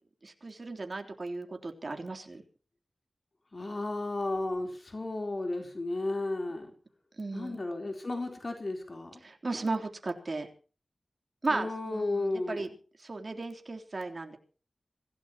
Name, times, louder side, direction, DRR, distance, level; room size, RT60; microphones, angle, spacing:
voice 1, 0.2-2.4 7.2-7.6 9.2-10.5 11.4-12.7 13.0-14.4, right 3 dB, 45° right, 4 dB, 3.6 m, -35 dB
voice 2, 3.5-6.7 7.3-9.1 11.5-12.6, left 2 dB, 40° left, 4 dB, 4.0 m, -33 dB
26.0 x 16.5 x 3.0 m, 0.38 s
wide cardioid pair, 100°, 0 cm